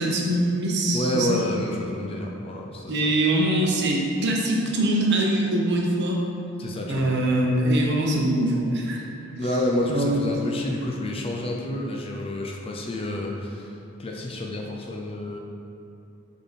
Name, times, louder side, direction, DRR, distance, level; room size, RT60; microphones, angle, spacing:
voice 1, 0.0-1.4 2.9-6.2 6.9-9.0 9.3-9.4 9.9-10.2, right 1 dB, 50° right, -1 dB, 0.8 m, -23 dB
voice 2, 0.9-3.1 6.6-7.1 9.4-15.4, left 1 dB, 25° left, 0 dB, 0.5 m, -29 dB
6.9 x 3.8 x 4.1 m, 2.7 s
head